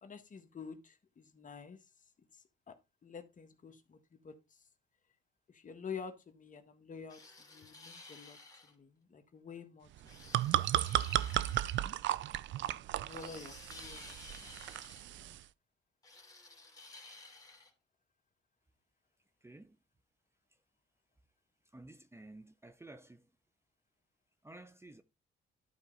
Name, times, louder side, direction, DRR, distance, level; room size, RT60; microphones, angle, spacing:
voice 1, 0.0-4.7 5.5-10.5 13.0-14.5 15.1-15.4, left 6 dB, 40° left, 1.6 m, -50 dB
sound 1, 7.1-8.7 10.1-11.8 13.1-15.1 16.0-17.7, left 3 dB, 20° left, 2.9 m, -53 dB
sound 2, 10.0-15.4, right 12 dB, 70° right, 0.5 m, -34 dB
voice 2, 19.4-19.8 21.7-23.3 24.4-25.0, right 2 dB, 15° right, 0.7 m, -53 dB
12.0 x 4.5 x 3.9 m
cardioid pair, 90°, 20 cm